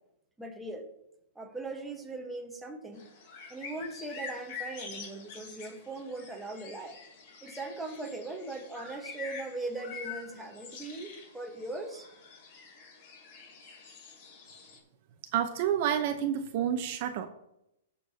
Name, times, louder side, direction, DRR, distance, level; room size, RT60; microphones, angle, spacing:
voice 1, 0.4-0.9 1.3-3.0 3.5-7.0 7.4-12.1, right 2 dB, 5° right, 1 dB, 1.1 m, -39 dB
sound 1, 2.9-14.8, left 5 dB, 40° left, 3.0 m, -46 dB
voice 2, 15.3-17.3, right 9 dB, 40° right, 7 dB, 0.7 m, -29 dB
17.5 x 6.8 x 2.8 m, 0.83 s
hypercardioid pair, 165°, 0 cm